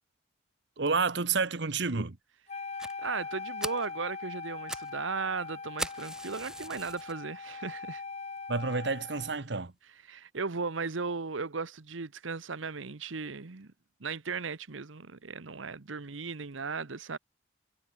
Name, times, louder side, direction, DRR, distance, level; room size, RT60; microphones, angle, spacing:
voice 1, 0.8-2.2 8.5-9.7, right 4 dB, 65° right, 1.1 m, -29 dB
Wind instrument woodwind instrument, 2.5-9.4, left 4 dB, 35° left, 0.8 m, -41 dB
Fire, 2.8-2.9 3.3-3.4 3.6-3.9 4.4-4.9 5.2-5.3 5.8-7.1 7.7-7.8 8.4-8.5 8.7-8.8 9.2-9.3, right 1 dB, 5° right, 0.7 m, -39 dB
voice 2, 3.0-8.0 10.0-13.7 14.0-17.2, right 4 dB, 85° right, 1.0 m, -36 dB
head